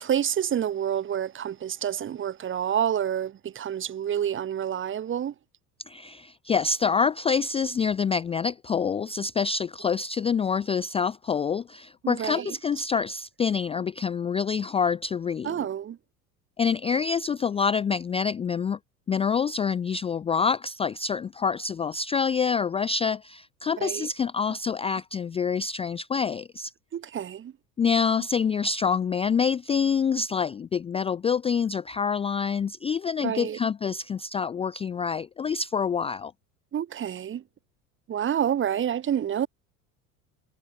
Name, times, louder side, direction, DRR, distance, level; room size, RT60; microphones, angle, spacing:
voice 1, 0.0-5.3 12.0-12.6 15.4-16.0 23.8-24.1 26.9-27.5 33.2-33.6 36.7-37.4 38.1-39.5, right 9 dB, 25° right, 1.1 m, -28 dB
voice 2, 5.9-15.7 16.6-18.8 19.1-26.7 27.8-36.3, left 6 dB, 15° left, 0.4 m, -26 dB
figure-of-eight pair, 70°, 44 cm